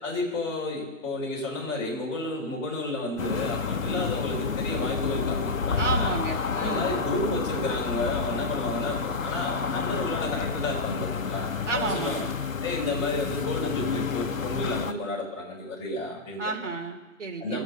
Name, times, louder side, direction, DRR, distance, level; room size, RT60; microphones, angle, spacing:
voice 1, 0.0-6.1 6.5-11.5 11.7-12.2 12.6-16.5 17.4-17.6, left 2 dB, 20° left, -4 dB, 4.0 m, -31 dB
sound 1, 3.2-14.9, left 6 dB, 85° left, 1.0 m, -30 dB
voice 2, 5.8-6.9 11.7-12.3 16.4-17.6, right 4 dB, 65° right, 2 dB, 2.8 m, -31 dB
20.5 x 8.0 x 6.7 m, 1.1 s
figure-of-eight pair, 150°, 39 cm